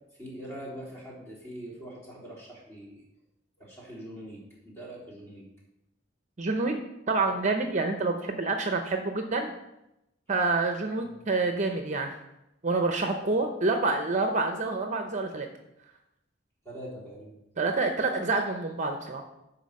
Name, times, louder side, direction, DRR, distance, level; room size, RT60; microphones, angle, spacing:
voice 1, 0.2-3.0 3.6-5.5 11.0-11.3 13.3-13.4 16.7-17.3, right 1 dB, 15° left, -6 dB, 3.6 m, -43 dB
voice 2, 6.4-6.8 7.1-9.5 10.3-12.1 12.6-15.5 17.6-19.2, right 3 dB, 40° right, 5 dB, 0.7 m, -27 dB
11.0 x 4.3 x 6.4 m, 0.89 s
head